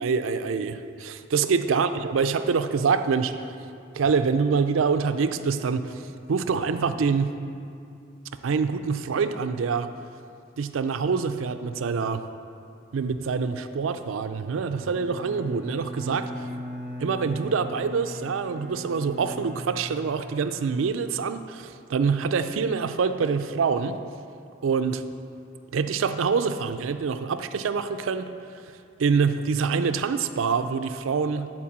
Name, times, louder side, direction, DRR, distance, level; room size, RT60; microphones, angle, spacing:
voice 1, 0.0-3.5 3.9-6.0 6.3-7.4 8.4-9.9 10.6-12.2 12.9-16.5 17.0-24.0 24.6-25.0 25.7-28.3 29.0-31.5, right 5 dB, 90° right, 10 dB, 0.4 m, -25 dB
Bowed string instrument, 14.7-21.3, equal, 35° left, 1.5 m, -39 dB
8.6 x 4.4 x 7.3 m, 2.4 s
head